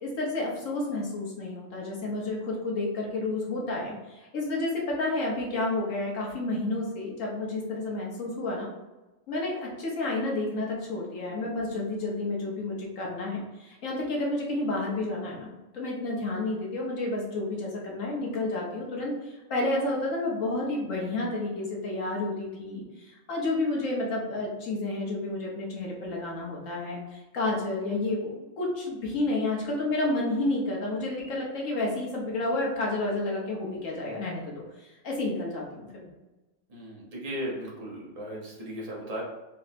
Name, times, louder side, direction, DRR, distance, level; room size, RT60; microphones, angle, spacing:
voice 1, 0.0-8.7 9.3-36.2, left 2 dB, 75° left, -3 dB, 1.5 m, -30 dB
voice 2, 36.7-39.2, equal, 30° right, -4 dB, 1.1 m, -36 dB
4.1 x 2.3 x 4.1 m, 1.1 s
omnidirectional pair, 1.4 m